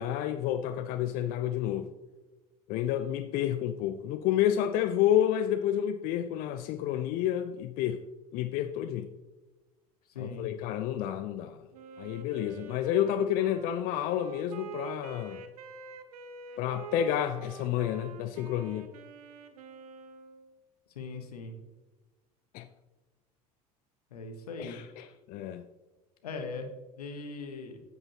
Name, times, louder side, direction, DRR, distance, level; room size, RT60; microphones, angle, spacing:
voice 1, 0.0-1.9 2.7-8.0 8.3-9.1 10.2-11.6 12.0-15.4 16.6-18.9 22.5-22.7 24.6-25.6, left 11 dB, 45° left, 0.4 m, -30 dB
voice 2, 10.1-10.5 20.9-21.5 24.1-24.8 26.2-26.7 27.0-27.8, left 4 dB, 75° left, 1.1 m, -39 dB
Wind instrument woodwind instrument, 11.7-20.6, right 6 dB, 70° right, 0.7 m, -46 dB
9.3 x 7.9 x 2.8 m
figure-of-eight pair, 70°, 20 cm